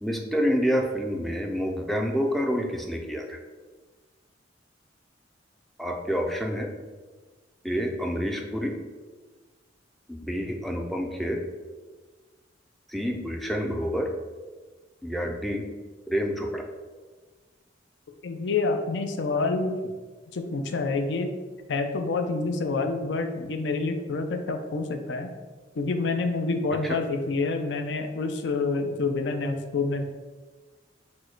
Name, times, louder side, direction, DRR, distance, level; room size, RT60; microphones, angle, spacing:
voice 1, 0.0-3.4 5.8-6.7 7.6-8.8 10.1-11.4 12.9-14.1 15.0-15.7 16.1-16.6, equal, ahead, 2 dB, 0.3 m, -28 dB
voice 2, 18.2-19.9 20.3-21.4 21.7-25.3 25.8-30.0, left 3 dB, 75° left, 6 dB, 0.5 m, -27 dB
4.3 x 2.2 x 4.4 m, 1.3 s
head